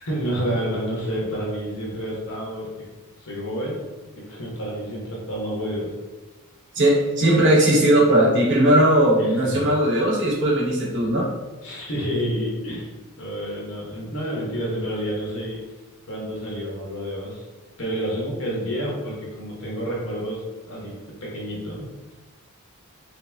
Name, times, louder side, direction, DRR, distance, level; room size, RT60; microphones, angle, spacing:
voice 1, 0.0-2.9 3.2-3.8 4.1-5.9 9.2-9.7 11.6-12.9 13.2-15.6 16.1-17.4 17.8-21.9, equal, 65° left, -3 dB, 1.0 m, -29 dB
voice 2, 6.7-11.3, right 1 dB, 55° right, -3 dB, 0.9 m, -18 dB
2.9 x 2.6 x 3.4 m, 1.2 s
head